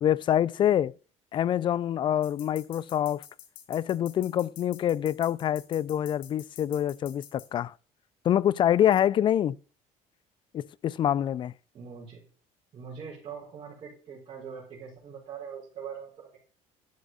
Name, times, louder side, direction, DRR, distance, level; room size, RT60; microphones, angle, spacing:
voice 1, 0.0-0.9 1.3-3.2 3.7-7.7 8.2-9.6 10.5-11.5, left 10 dB, 35° left, 0.4 m, -26 dB
sound 1, 2.2-7.5, left 11 dB, 90° left, 2.1 m, -48 dB
voice 2, 11.7-12.2 12.7-16.4, right 7 dB, 40° right, 4.4 m, -42 dB
11.5 x 6.0 x 5.5 m
cardioid pair, 140°, 14 cm